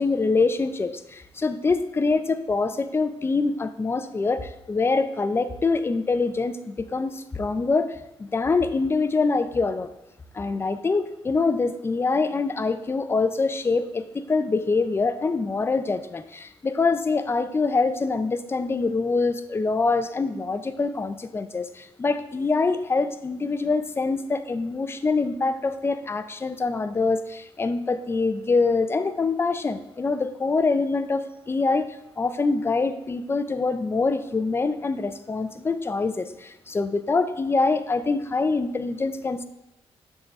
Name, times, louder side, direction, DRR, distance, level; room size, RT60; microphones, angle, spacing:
voice 1, 0.0-9.9 10.3-39.4, left 3 dB, 25° left, 11 dB, 0.4 m, -25 dB
6.5 x 3.8 x 5.8 m, 0.88 s
cardioid pair, 120°, 11 cm